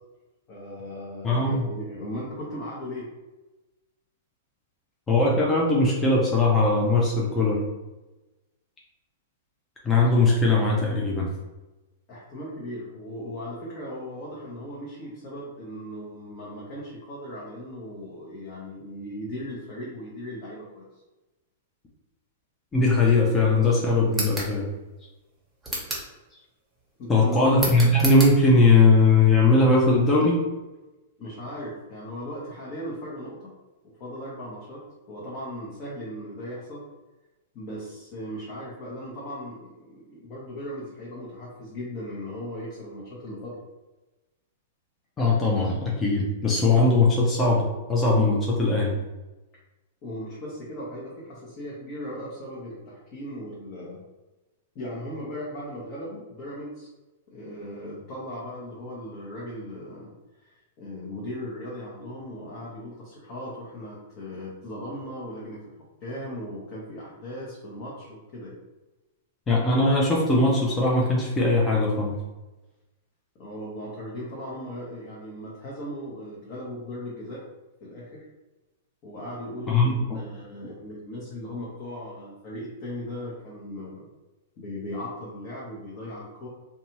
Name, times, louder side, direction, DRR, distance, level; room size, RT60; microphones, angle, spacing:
voice 1, 0.5-3.1 12.1-20.8 27.0-27.7 31.2-33.5 33.8-36.8 37.5-43.6 50.0-54.0 54.7-56.9 57.3-65.7 66.0-68.6 73.4-77.4 77.8-78.3 79.0-84.1 84.6-86.5, left 1 dB, 40° left, -6 dB, 0.9 m, -37 dB
voice 2, 1.2-1.7 5.1-7.6 9.8-11.3 22.7-24.7 27.1-30.4 45.2-49.0 69.5-72.2 79.7-80.2, left 2 dB, 20° left, -3 dB, 0.6 m, -20 dB
sound 1, 24.1-24.5 25.6-26.1 27.6-28.3, right 1 dB, 5° right, 1.1 m, -30 dB
2.6 x 2.3 x 2.9 m, 1.1 s
hypercardioid pair, 110°, 0 cm